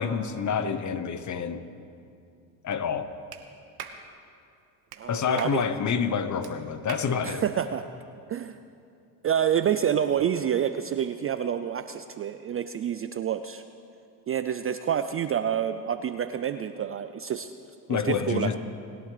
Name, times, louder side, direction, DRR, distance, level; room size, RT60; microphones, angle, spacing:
voice 1, 0.0-1.6 2.6-3.1 5.1-7.4 17.9-18.6, left 6 dB, 35° left, 11 dB, 1.0 m, -28 dB
Clapping, 3.3-3.4 3.8-4.0 4.9-5.0 5.4-5.6 6.4-6.5 6.9-7.1, right 8 dB, 50° right, 1.4 m, -39 dB
voice 2, 5.0-5.6 7.2-7.8 8.3-8.6 9.2-13.6 14.3-17.5 17.9-18.5, right 9 dB, 30° right, 10 dB, 0.4 m, -28 dB
20.0 x 11.0 x 3.3 m, 2.5 s
hypercardioid pair, 70°, 49 cm